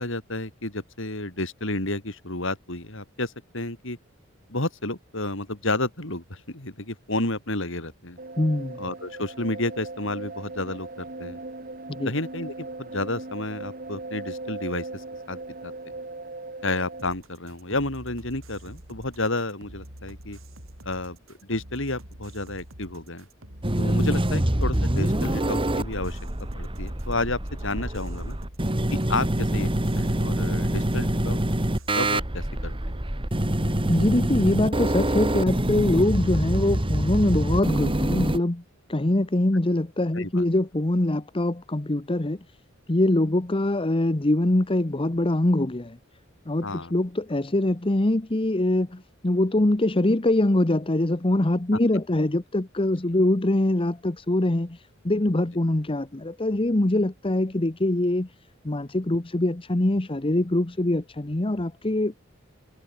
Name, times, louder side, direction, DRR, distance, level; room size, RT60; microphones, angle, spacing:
voice 1, 0.0-4.0 4.5-8.2 8.8-11.4 12.0-15.7 16.6-20.4 20.8-21.2 21.5-23.3 23.8-26.2 26.6-28.4 28.9-31.4 31.9-32.7 33.6-33.8 40.1-40.4 46.6-47.0, left 2 dB, 70° left, 6.9 m, -31 dB
sound 1, 8.2-17.1, right 2 dB, 45° right, 4.0 m, -38 dB
voice 2, 8.4-8.8 11.9-12.1 33.8-38.6 38.9-42.4 42.9-46.0 46.5-58.3 58.6-62.1, left 1 dB, 25° left, 1.0 m, -23 dB
sound 2, 17.0-32.2, right 1 dB, 85° right, 7.6 m, -46 dB
sound 3, 23.6-38.4, right 1 dB, 25° right, 2.0 m, -25 dB
head